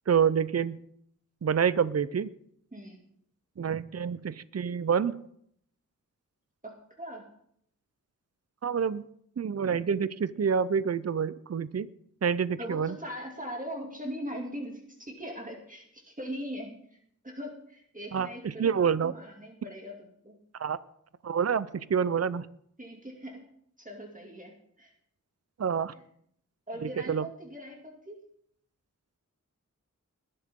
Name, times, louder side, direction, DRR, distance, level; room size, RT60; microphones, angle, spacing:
voice 1, 0.1-0.8 1.4-2.3 3.6-5.2 8.6-9.0 9.4-11.9 12.2-12.9 18.1-19.1 20.6-20.8 21.2-22.5 25.6-25.9 27.1-27.2, right 7 dB, 55° right, 17 dB, 0.6 m, -27 dB
voice 2, 6.6-7.3 12.6-17.0 17.2-18.7 19.0-20.4 22.8-23.4 23.8-24.9 25.9-26.0 26.7-28.2, equal, 25° right, 0 dB, 2.5 m, -40 dB
21.0 x 11.0 x 3.7 m, 0.69 s
wide cardioid pair, 70°, 31 cm